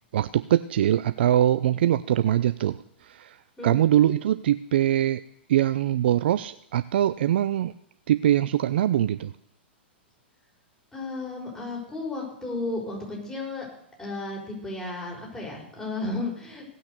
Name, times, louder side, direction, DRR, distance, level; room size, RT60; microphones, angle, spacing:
voice 1, 0.1-3.4 3.6-5.2 5.5-7.7 8.1-9.3, right 11 dB, 65° right, 13 dB, 0.4 m, -23 dB
voice 2, 10.9-13.6 14.0-16.6, left 2 dB, 10° left, -3 dB, 6.0 m, -33 dB
18.0 x 6.3 x 6.7 m, 0.78 s
hypercardioid pair, 115°, 6 cm